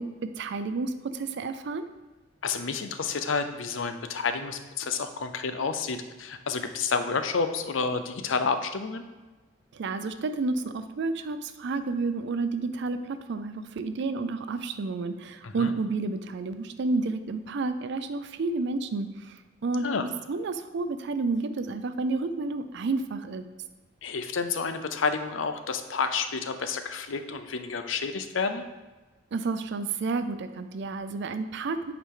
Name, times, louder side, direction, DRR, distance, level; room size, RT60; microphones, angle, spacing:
voice 1, 0.0-1.9 9.7-23.5 29.3-31.9, right 3 dB, 65° right, 10 dB, 0.4 m, -30 dB
voice 2, 2.4-9.0 15.4-15.7 19.8-20.1 24.0-28.6, left 5 dB, 80° left, 8 dB, 0.6 m, -30 dB
8.4 x 4.7 x 3.7 m, 1.2 s
head